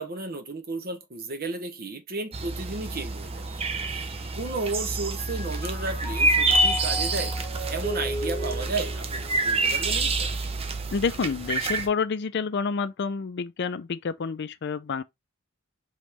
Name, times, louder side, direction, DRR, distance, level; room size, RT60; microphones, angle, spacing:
voice 1, 0.0-3.4 3.9-4.1 4.3-7.4 7.7-10.3, right 3 dB, 45° right, 1.0 m, -33 dB
sound 1, 2.3-11.9, right 2 dB, 30° right, 0.7 m, -27 dB
Mallet percussion, 4.3-4.8 5.2-10.6, right 1 dB, 25° left, 1.4 m, -38 dB
voice 2, 10.9-15.0, left 5 dB, 55° left, 0.4 m, -28 dB
5.3 x 3.1 x 3.1 m
head